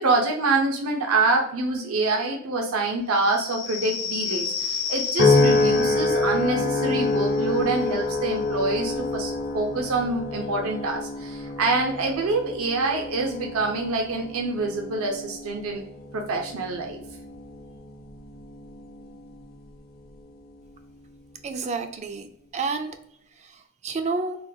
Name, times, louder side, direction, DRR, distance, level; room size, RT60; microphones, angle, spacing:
voice 1, 0.0-15.8 16.1-17.0, right 3 dB, 90° right, 2 dB, 0.6 m, -26 dB
sound 1, 3.1-10.4, left 6 dB, 85° left, 0.9 m, -34 dB
sound 2, 5.2-19.7 20.2-20.6, left 2 dB, 45° left, 0.6 m, -27 dB
voice 2, 21.4-22.3 22.5-23.0 23.4-24.4, right 4 dB, 30° right, 8 dB, 0.3 m, -30 dB
3.6 x 2.2 x 2.7 m, 0.73 s
head